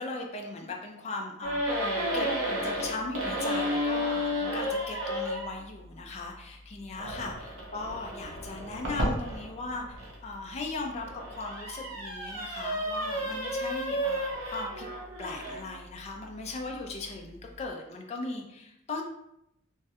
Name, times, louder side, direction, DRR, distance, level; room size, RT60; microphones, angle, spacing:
voice 1, 0.0-2.3 2.6-14.9 15.2-19.0, left 3 dB, 30° left, 1 dB, 0.3 m, -38 dB
sound 1, 1.4-5.5 7.0-10.1 10.8-15.7, equal, 75° right, 0.8 m, -32 dB
3.1 x 2.3 x 2.8 m, 0.81 s
head